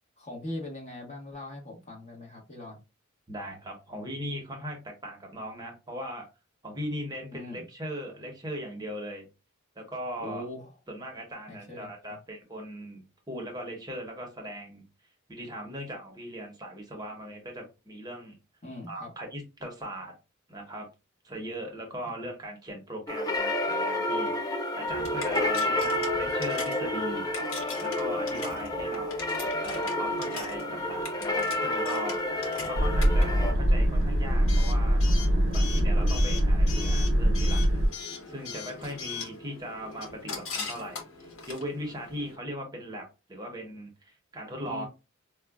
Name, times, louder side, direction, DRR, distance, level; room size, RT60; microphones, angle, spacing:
voice 1, 0.2-2.8 7.3-7.6 10.2-10.7 11.5-12.2 18.6-19.1 44.6-44.9, left 1 dB, 35° left, 1.0 m, -41 dB
voice 2, 3.3-6.3 6.6-9.3 9.7-10.4 10.9-14.9 15.3-18.4 18.9-20.2 20.5-20.9 21.2-27.5 27.8-35.0 35.5-44.9, equal, 20° right, 0.8 m, -39 dB
sound 1, 23.1-33.5, left 1 dB, 20° left, 0.4 m, -30 dB
Coin (dropping) / Alarm, 24.9-42.4, left 4 dB, 80° left, 1.0 m, -41 dB
sound 2, 32.7-37.9, equal, 75° right, 0.6 m, -23 dB
4.7 x 2.2 x 2.3 m
head